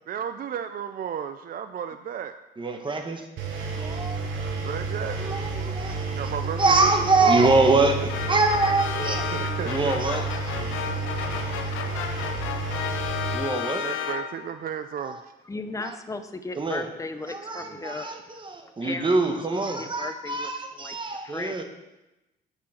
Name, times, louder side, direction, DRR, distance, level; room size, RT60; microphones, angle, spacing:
voice 1, 0.1-2.3 2.6-2.8 4.6-5.2 5.5-5.8 6.1-6.9 7.2-7.4 9.3-10.0 10.5-10.8 12.0-12.1 13.8-15.3, right 8 dB, 50° right, 10 dB, 0.4 m, -33 dB
voice 2, 2.6-3.3 3.8-4.3 5.2-6.0 6.6-9.3 9.6-10.5 13.3-13.9 15.0-15.2 16.6-16.8 17.3-21.6, right 3 dB, 25° right, 5 dB, 1.2 m, -24 dB
Engine, 3.4-13.4, right 3 dB, 75° right, 1.2 m, -31 dB
sound 1, 8.1-14.6, left 9 dB, 85° left, 0.6 m, -33 dB
voice 3, 15.5-18.4 18.8-21.6, left 3 dB, 15° left, 8 dB, 0.7 m, -36 dB
8.8 x 5.6 x 4.3 m, 0.98 s
cardioid pair, 90°, 20 cm